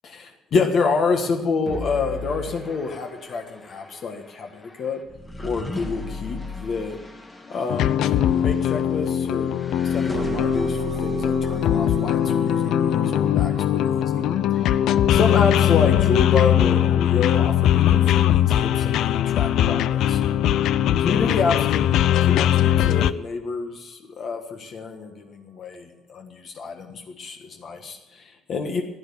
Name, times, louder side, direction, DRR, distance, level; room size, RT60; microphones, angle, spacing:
voice 1, 0.0-5.0 5.4-7.0 7.5-14.3 14.5-20.2 21.0-28.8, left 4 dB, 40° left, 4 dB, 1.6 m, -28 dB
sound 1, 1.7-13.0, left 2 dB, 15° left, 1.9 m, -37 dB
sound 2, 7.7-23.1, left 11 dB, 65° left, 0.5 m, -20 dB
sound 3, 10.1-20.4 20.7-20.8, right 12 dB, 50° right, 0.7 m, -39 dB
15.5 x 10.5 x 7.1 m, 0.96 s
cardioid pair, 170°, 0 cm